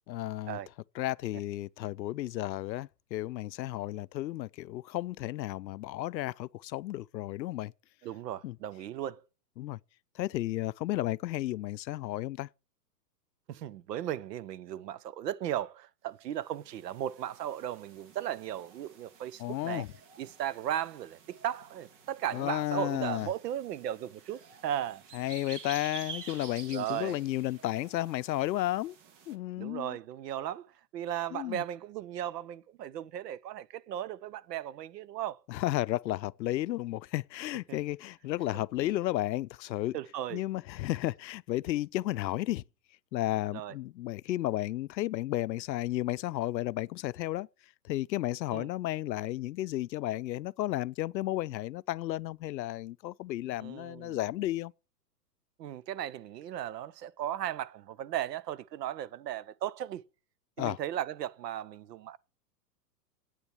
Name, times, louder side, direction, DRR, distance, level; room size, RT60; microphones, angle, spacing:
voice 1, 0.1-0.6 1.0-7.7 8.4-8.5 9.6-9.8 10.2-12.5 19.4-19.9 22.3-23.3 25.1-28.9 29.3-30.0 31.3-31.6 35.5-40.0 40.3-42.6 43.1-47.5 47.8-54.7 60.6-60.8, left 15 dB, 85° left, 0.6 m, -33 dB
voice 2, 8.0-9.2 13.5-19.9 20.2-25.0 26.7-27.2 29.6-35.4 39.9-40.4 43.5-43.8 48.5-48.7 53.6-54.2 55.6-60.0 60.6-62.2, right 11 dB, 70° right, 0.9 m, -36 dB
sound 1, 16.4-29.3, right 6 dB, 45° right, 1.9 m, -50 dB
9.0 x 7.1 x 8.0 m
hypercardioid pair, 130°, 50 cm